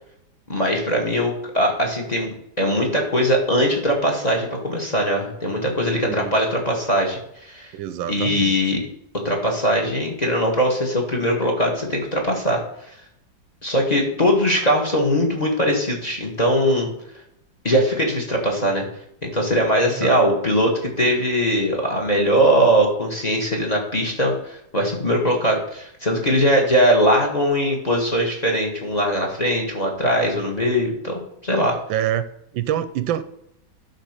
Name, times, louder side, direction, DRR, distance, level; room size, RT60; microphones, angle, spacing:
voice 1, 0.5-7.7 8.1-8.8 9.1-12.6 13.6-16.9 17.6-18.9 19.2-31.8, equal, 20° left, 1 dB, 1.6 m, -21 dB
voice 2, 6.1-6.4 7.7-8.5 19.9-20.1 31.9-32.3 32.5-33.2, right 11 dB, 80° right, 12 dB, 1.3 m, -26 dB
11.5 x 3.9 x 6.6 m, 0.75 s
omnidirectional pair, 2.1 m